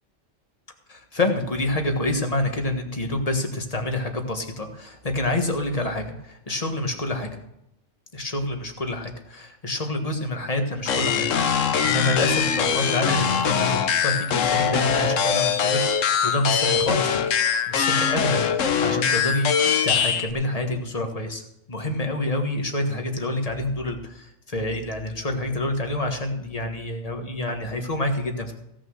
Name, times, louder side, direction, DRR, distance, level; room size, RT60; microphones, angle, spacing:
voice 1, 0.9-7.3 8.1-11.3 11.6-17.3 17.7-21.4 21.7-28.5, left 1 dB, 30° left, 4 dB, 1.6 m, -27 dB
sound 1, 10.9-20.3, left 7 dB, 75° left, 1.2 m, -22 dB
16.5 x 6.4 x 6.4 m, 0.82 s
omnidirectional pair, 1.3 m